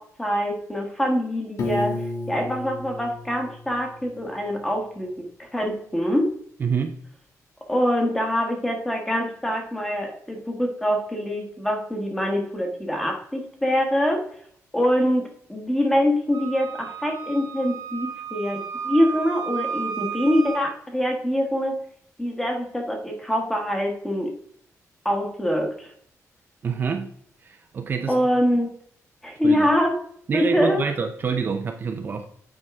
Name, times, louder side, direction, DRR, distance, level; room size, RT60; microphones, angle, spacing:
voice 1, 0.0-2.0 2.3-6.3 7.7-14.2 14.7-21.8 22.2-24.3 25.0-25.9 28.1-28.7 29.2-30.0 30.3-30.8, equal, 5° left, 2 dB, 1.3 m, -24 dB
Piano, 1.6-4.5, left 2 dB, 60° left, 1.4 m, -32 dB
voice 2, 6.6-6.9 26.6-27.1 27.4-28.1 29.4-29.7 30.3-32.3, right 6 dB, 35° right, 5 dB, 0.5 m, -26 dB
Wind instrument woodwind instrument, 16.3-20.6, right 7 dB, 85° right, 1.2 m, -33 dB
8.9 x 4.6 x 3.5 m, 0.63 s
wide cardioid pair, 180°, 6 cm